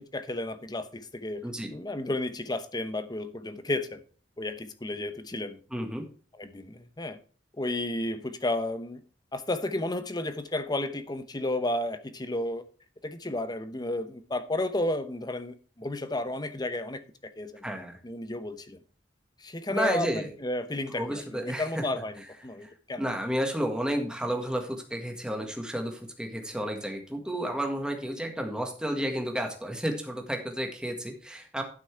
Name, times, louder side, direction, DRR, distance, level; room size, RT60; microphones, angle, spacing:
voice 1, 0.0-4.0 4.4-5.6 6.4-7.2 7.6-9.0 9.3-12.6 13.0-17.6 18.0-18.8 19.4-23.1, left 1 dB, 25° left, 0.9 m, -32 dB
voice 2, 5.7-6.0 17.6-18.0 19.7-20.3 20.9-21.8 22.6-22.7 23.0-31.6, equal, 5° right, 1.7 m, -31 dB
12.0 x 6.0 x 4.6 m
head